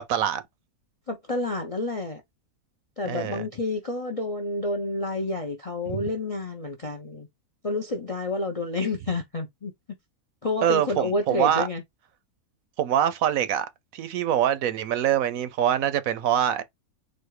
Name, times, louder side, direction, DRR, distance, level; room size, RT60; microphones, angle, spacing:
voice 1, 0.1-0.4 3.1-3.4 5.9-6.0 10.6-11.7 12.8-13.7 13.9-16.6, right 10 dB, 70° right, 1.0 m, -24 dB
voice 2, 1.1-2.2 3.0-7.3 7.6-9.7 10.4-11.8, left 2 dB, 45° left, 0.4 m, -29 dB
4.2 x 2.4 x 4.7 m
omnidirectional pair, 1.6 m